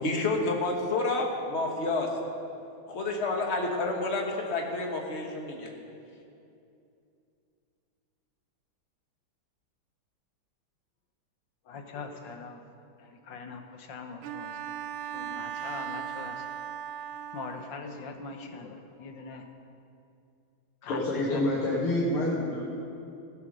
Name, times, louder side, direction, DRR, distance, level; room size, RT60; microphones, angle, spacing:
voice 1, 0.0-2.1 2.9-5.7, left 2 dB, 35° left, 1 dB, 1.4 m, -29 dB
voice 2, 11.7-12.6 13.0-14.8 15.1-16.5 17.3-19.5 20.8-21.4, left 4 dB, 65° left, 5 dB, 1.4 m, -42 dB
Bowed string instrument, 14.2-17.9, right 9 dB, 90° right, 1.5 m, -38 dB
voice 3, 20.9-22.7, left 1 dB, 85° left, -6 dB, 2.4 m, -27 dB
16.0 x 6.2 x 6.5 m, 2.6 s
omnidirectional pair, 2.3 m